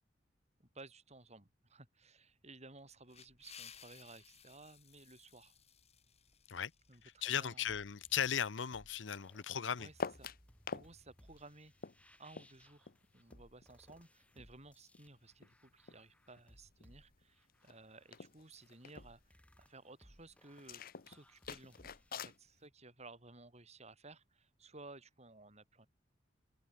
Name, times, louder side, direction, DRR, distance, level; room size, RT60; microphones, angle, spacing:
voice 1, 0.6-5.6 6.9-7.7 9.8-10.3 10.7-11.7 12.2-25.9, right 2 dB, 35° right, 7.1 m, -57 dB
sound 1, 2.9-7.3, left 8 dB, 35° left, 3.7 m, -59 dB
voice 2, 7.0-9.9, left 8 dB, 80° left, 0.8 m, -37 dB
sound 2, 7.2-22.4, equal, 5° left, 6.0 m, -65 dB
sound 3, 10.0-10.9 11.2-14.0 14.3-16.1 16.4-16.9 17.2-17.3 17.5-17.8 18.1-19.1 20.6-22.4, left 5 dB, 50° left, 0.8 m, -46 dB
head